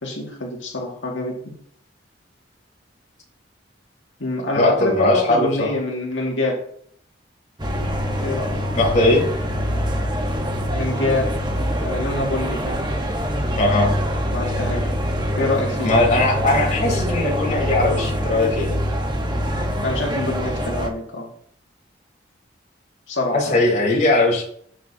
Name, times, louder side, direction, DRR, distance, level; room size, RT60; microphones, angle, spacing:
voice 1, 0.0-1.6 4.2-6.6 8.2-8.6 10.7-11.3 11.8-12.8 14.3-14.9 15.4-15.9 19.8-21.3 23.1-23.6, left 2 dB, 90° left, -1 dB, 2.0 m, -25 dB
voice 2, 4.5-5.7 8.7-9.2 13.6-13.9 15.8-18.7 23.3-24.4, left 2 dB, 40° left, -3 dB, 3.8 m, -19 dB
sound 1, 7.6-20.9, equal, 25° right, 1.1 m, -24 dB
14.5 x 6.4 x 2.8 m, 0.63 s
head